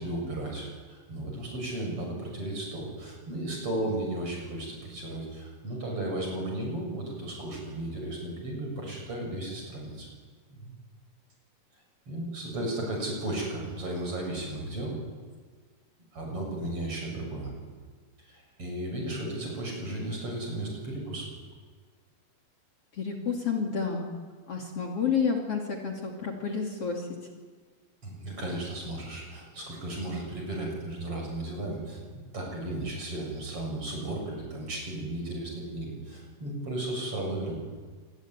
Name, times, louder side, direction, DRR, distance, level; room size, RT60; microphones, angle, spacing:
voice 1, 0.0-10.1 10.5-10.7 12.1-15.0 16.1-17.5 18.6-21.3 28.0-32.0 32.3-37.6, right 1 dB, 40° right, 0 dB, 8.2 m, -34 dB
voice 2, 22.9-24.1 24.5-27.1, left 6 dB, 45° left, 1 dB, 3.4 m, -30 dB
27.0 x 22.0 x 9.7 m, 1.5 s
omnidirectional pair, 4.0 m